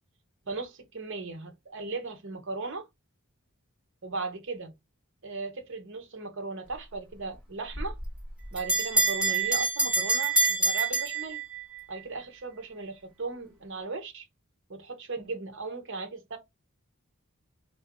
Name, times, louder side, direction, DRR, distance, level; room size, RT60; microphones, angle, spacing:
voice 1, 0.5-2.9 4.0-4.7 5.2-8.0 8.5-11.4 11.9-14.3 14.7-16.4, right 3 dB, 55° right, 1.0 m, -37 dB
Bell, 7.7-11.8, right 3 dB, 5° right, 1.6 m, -26 dB
3.7 x 2.7 x 3.6 m
head